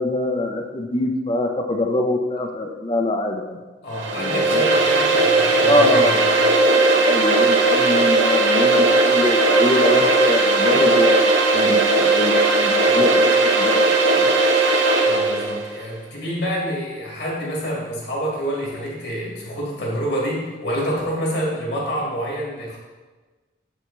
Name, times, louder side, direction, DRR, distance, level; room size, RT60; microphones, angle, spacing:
voice 1, 0.0-3.6 4.2-4.6 5.6-6.4 6.7-13.8 14.1-14.3, left 1 dB, 25° left, 4 dB, 0.5 m, -24 dB
voice 2, 3.8-6.5 12.8-13.1 15.0-22.8, equal, 55° left, -4 dB, 2.0 m, -27 dB
sound 1, 3.9-15.6, right 2 dB, 70° right, 0.8 m, -17 dB
7.3 x 6.3 x 3.2 m, 1.3 s
head